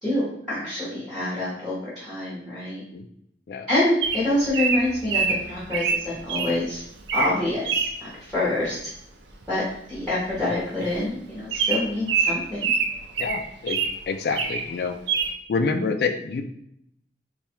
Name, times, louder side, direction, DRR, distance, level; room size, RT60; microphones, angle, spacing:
voice 1, 0.0-2.8 3.7-6.8 7.1-8.8 9.5-9.6 9.9-12.7, left 1 dB, ahead, -10 dB, 1.0 m, -26 dB
Bird vocalization bird call bird song, 4.0-6.5 7.0-7.3 7.7-7.9 9.4-9.7 9.9-10.0 10.3-10.5 10.9-11.0 11.5-14.0 14.3-14.7 15.1-15.3, right 5 dB, 90° right, 0.5 m, -25 dB
voice 2, 13.2-13.8 14.1-15.0 15.5-16.4, left 4 dB, 60° left, 7 dB, 0.3 m, -27 dB
3.4 x 2.3 x 4.3 m, 0.71 s
head